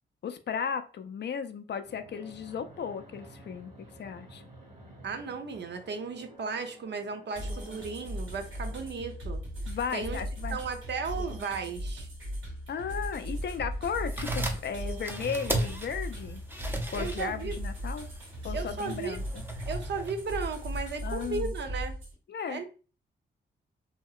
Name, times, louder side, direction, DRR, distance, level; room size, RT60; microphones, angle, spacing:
voice 1, 0.2-3.7 4.0-4.4 9.7-10.6 12.7-16.4 16.9-18.1 18.4-19.4 21.0-21.5 22.3-22.6, left 7 dB, 55° left, 9 dB, 0.4 m, -35 dB
Fixed-wing aircraft airplane, 1.8-8.9, right 1 dB, 35° right, 1.5 m, -52 dB
voice 2, 5.0-10.2 10.5-12.1 16.9-17.6 18.5-19.2 19.7-21.9 22.5-22.7, right 5 dB, 55° right, 6 dB, 0.6 m, -35 dB
sound 1, 7.4-22.1, equal, 70° right, 1.6 m, -37 dB
sound 2, 14.0-20.8, right 1 dB, 10° right, 0.6 m, -37 dB
2.8 x 2.7 x 2.3 m, 0.36 s
cardioid pair, 65°, 21 cm